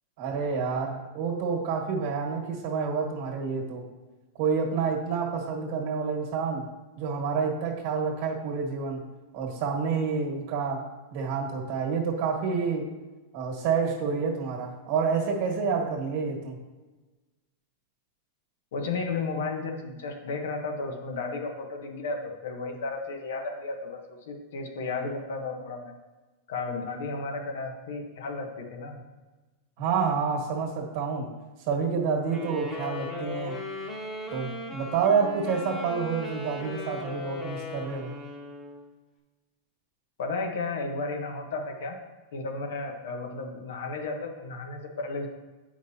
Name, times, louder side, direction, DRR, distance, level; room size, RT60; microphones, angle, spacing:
voice 1, 0.2-3.9 4.4-6.6 7.0-9.0 9.3-12.9 13.3-16.6 29.8-31.3 31.7-33.6 34.3-38.1, right 5 dB, 55° right, 0 dB, 1.6 m, -28 dB
voice 2, 18.7-25.9 26.5-29.0 40.2-42.0 42.3-45.3, left 3 dB, 80° left, 3 dB, 1.0 m, -33 dB
sound 1, 32.3-38.8, left 1 dB, 15° left, 1.2 m, -37 dB
8.3 x 5.1 x 2.8 m, 1.2 s
supercardioid pair, 135°, 0 cm